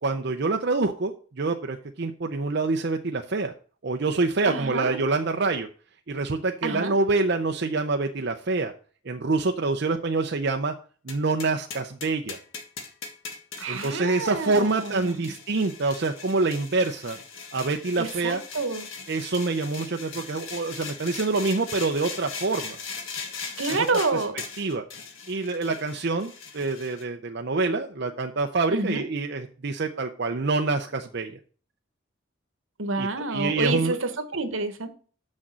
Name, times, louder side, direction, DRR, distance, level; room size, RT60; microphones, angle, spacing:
voice 1, 0.0-3.5 3.8-5.7 6.1-8.7 9.0-10.7 11.0-12.4 13.7-17.2 17.5-18.4 19.1-22.8 23.7-23.9 24.1-24.2 24.6-24.8 25.3-31.4 33.0-34.0, right 3 dB, 55° right, 0.6 m, -26 dB
voice 2, 4.5-5.0 6.6-6.9 13.6-15.2 18.0-18.9 23.6-24.3 28.7-29.0 32.8-34.9, right 3 dB, 80° right, 1.3 m, -28 dB
sound 1, 11.1-27.0, left 5 dB, 80° left, 1.6 m, -39 dB
6.4 x 6.2 x 7.3 m
head